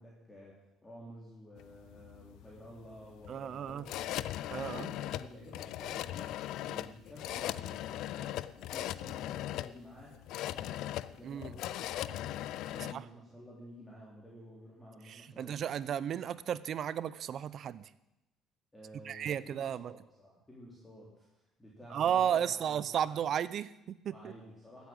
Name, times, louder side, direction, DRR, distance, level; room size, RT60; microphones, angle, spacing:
voice 1, 0.0-4.2 4.6-15.6 18.7-21.3 21.6-23.4 24.1-24.9, equal, 10° left, -5 dB, 3.6 m, -52 dB
sound 1, 1.6-12.9, left 13 dB, 70° left, 0.5 m, -39 dB
voice 2, 3.3-3.8 4.5-4.9 11.2-11.5 12.9-13.0 15.1-17.9 19.0-19.9 21.9-24.3, right 9 dB, 50° right, 18 dB, 0.6 m, -34 dB
15.0 x 8.4 x 7.8 m, 0.93 s
cardioid pair, 130°, 0 cm